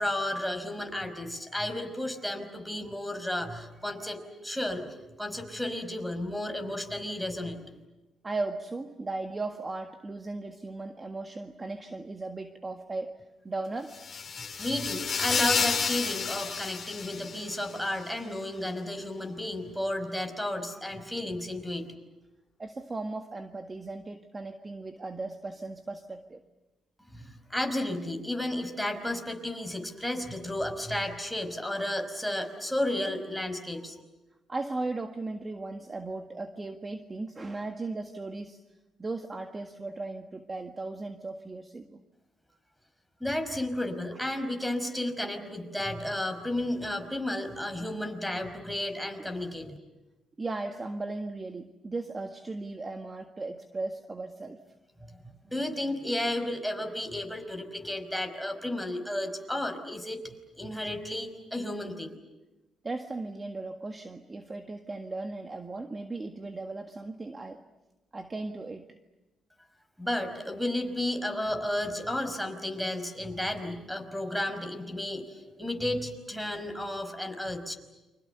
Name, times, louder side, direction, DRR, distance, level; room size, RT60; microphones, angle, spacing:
voice 1, 0.0-4.2 4.4-7.6 14.4-21.9 27.1-34.0 43.2-49.8 55.1-62.1 70.0-77.7, left 1 dB, ahead, 9 dB, 5.1 m, -33 dB
voice 2, 8.2-13.9 22.6-26.4 34.5-38.6 39.0-42.0 49.2-49.3 50.4-54.6 62.8-67.6 68.1-69.0, right 3 dB, 25° right, 5 dB, 1.7 m, -37 dB
sound 1, 13.9-17.8, left 5 dB, 40° left, 2.8 m, -31 dB
29.5 x 26.0 x 6.9 m, 1.1 s
cardioid pair, 90°, 0 cm